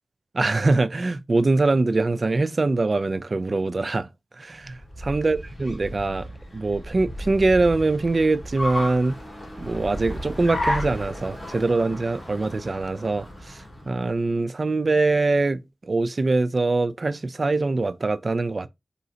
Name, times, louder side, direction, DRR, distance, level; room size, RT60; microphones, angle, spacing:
voice 1, 0.3-4.1 4.4-9.2 9.6-18.7, right 3 dB, 50° right, 0.3 m, -23 dB
Car, 4.6-14.2, left 1 dB, 25° left, 2.4 m, -34 dB
4.8 x 2.7 x 2.7 m
cardioid pair, 60°, 0 cm